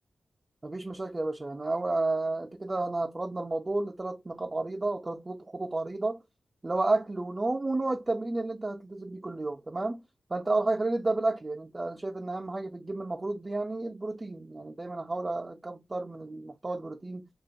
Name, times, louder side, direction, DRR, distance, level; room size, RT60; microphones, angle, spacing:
voice 1, 0.6-6.2 6.6-10.0 10.3-17.3, right 2 dB, 35° right, 0.3 m, -31 dB
2.4 x 2.2 x 2.5 m
cardioid pair, 45°, 0 cm